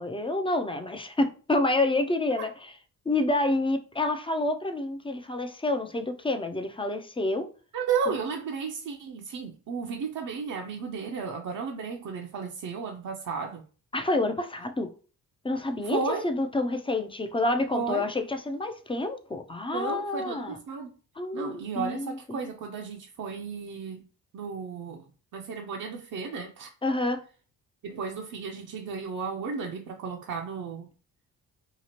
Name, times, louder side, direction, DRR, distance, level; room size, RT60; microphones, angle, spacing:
voice 1, 0.0-2.7 3.1-7.5 8.1-8.2 13.9-14.9 15.4-20.6 21.2-22.5 26.8-27.2, left 2 dB, 15° left, 0.3 m, -28 dB
voice 2, 7.7-13.6 15.8-16.2 17.7-18.0 19.7-20.9 21.3-24.0 24.3-25.0 25.3-26.7 27.8-30.9, right 5 dB, 55° right, 0.5 m, -33 dB
2.8 x 2.4 x 2.8 m
cardioid pair, 70°, 37 cm